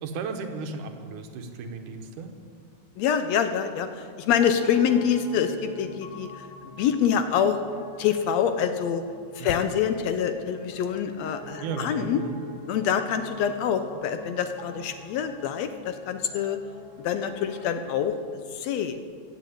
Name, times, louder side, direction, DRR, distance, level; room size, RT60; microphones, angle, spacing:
voice 1, 0.0-2.3 9.4-9.7 11.6-12.4, right 4 dB, 90° right, 6 dB, 2.7 m, -35 dB
voice 2, 3.0-6.3 6.8-7.6 8.0-9.0 9.4-12.2 12.7-16.6 17.0-19.0, left 8 dB, 75° left, 9 dB, 1.7 m, -26 dB
Piano, 4.3-18.0, left 1 dB, 50° left, 3.0 m, -45 dB
15.5 x 8.0 x 8.5 m, 2.1 s
omnidirectional pair, 3.5 m